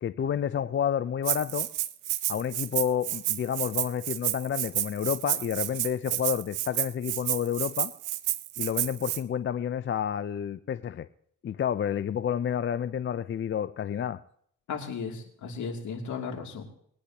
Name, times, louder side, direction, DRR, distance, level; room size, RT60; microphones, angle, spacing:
voice 1, 0.0-1.7 2.3-7.9 8.6-11.1 11.4-14.2, left 8 dB, 40° left, 13 dB, 0.5 m, -30 dB
Rattle (instrument), 1.2-9.2, right 15 dB, 90° right, 0.7 m, -30 dB
voice 2, 14.7-16.6, left 5 dB, 70° left, 2 dB, 2.8 m, -35 dB
21.5 x 10.0 x 2.9 m, 0.65 s
cardioid pair, 90°, 30 cm